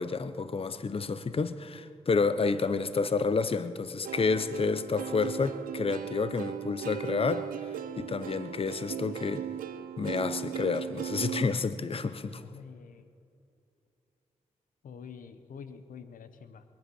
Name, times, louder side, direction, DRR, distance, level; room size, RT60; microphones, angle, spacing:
voice 1, 0.0-7.7 8.0-9.4 10.0-12.4, left 4 dB, 40° left, 13 dB, 0.9 m, -30 dB
Plucked string instrument, 4.0-11.4, right 10 dB, 85° right, 0.5 m, -38 dB
voice 2, 12.3-13.1 14.8-16.6, left 6 dB, 75° left, 11 dB, 0.9 m, -47 dB
22.0 x 10.5 x 6.3 m, 2.6 s
supercardioid pair, 45°, 14 cm